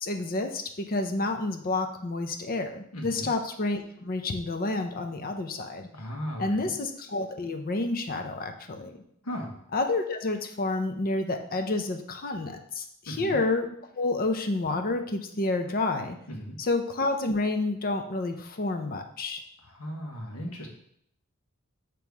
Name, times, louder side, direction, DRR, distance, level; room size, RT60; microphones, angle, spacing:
voice 1, 0.0-5.9 6.4-9.0 9.7-16.2 16.6-19.4, left 2 dB, 40° left, 6 dB, 0.6 m, -29 dB
voice 2, 2.9-3.3 5.9-6.7 9.2-9.5 13.1-13.4 16.3-16.6 19.7-20.7, equal, 75° left, 1 dB, 1.4 m, -36 dB
7.1 x 3.0 x 4.6 m, 0.71 s
head